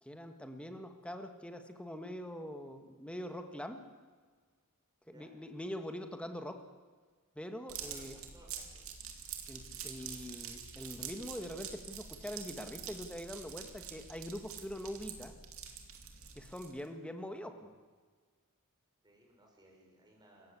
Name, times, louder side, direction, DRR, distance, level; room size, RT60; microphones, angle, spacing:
voice 1, 0.0-3.8 5.1-6.6 7.3-8.1 9.5-15.3 16.3-17.7, equal, 5° left, 7 dB, 1.7 m, -43 dB
voice 2, 5.0-5.3 7.8-8.5 8.7-8.8 19.0-20.6, right 1 dB, 20° right, 0 dB, 5.9 m, -61 dB
sound 1, 7.7-16.9, right 7 dB, 70° right, 2.5 m, -46 dB
26.5 x 15.0 x 8.3 m, 1.5 s
head